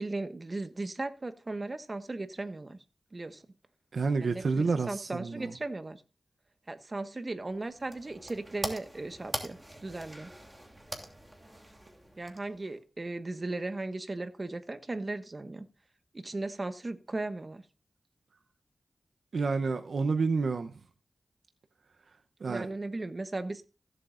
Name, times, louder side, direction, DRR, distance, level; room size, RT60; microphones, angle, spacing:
voice 1, 0.0-2.8 3.1-3.4 4.2-6.0 6.7-10.3 12.2-15.7 16.1-17.6 22.5-23.6, right 2 dB, 45° right, 1.4 m, -37 dB
voice 2, 3.9-5.5 19.3-20.7 22.4-22.7, right 4 dB, 80° right, 0.8 m, -29 dB
sound 1, 7.4-12.8, right 1 dB, 15° right, 2.8 m, -42 dB
16.5 x 7.7 x 2.5 m
cardioid pair, 45°, 0 cm